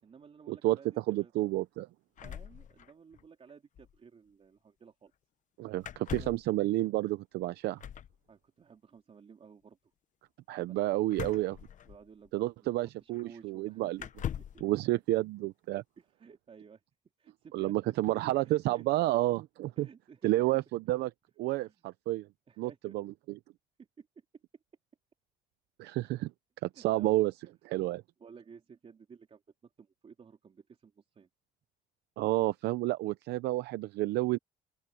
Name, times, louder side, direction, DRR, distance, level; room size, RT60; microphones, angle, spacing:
voice 1, 0.0-1.3 2.2-5.1 6.2-6.4 8.3-9.8 10.5-11.0 11.9-14.6 16.0-16.8 17.2-18.2 18.6-19.1 19.8-20.6 21.0-21.1 21.6-21.7 22.5-23.0 24.0-24.1 26.7-27.2 27.4-27.8 28.2-31.3, right 6 dB, 35° right, 3.4 m, -55 dB
voice 2, 1.1-1.9 5.6-7.8 10.5-11.6 12.3-14.0 14.6-15.8 17.5-19.9 20.2-21.1 21.4-22.3 22.6-23.1 25.8-26.3 26.6-27.3 27.6-28.0 32.2-34.4, right 17 dB, 80° right, 0.7 m, -30 dB
sound 1, 2.2-3.2 3.5-3.6 3.8-4.0 5.8-6.5 7.8-8.2 11.1-12.3 13.1-13.2 14.0-14.7, left 10 dB, 50° left, 1.0 m, -41 dB
open air
cardioid pair, 110°, 17 cm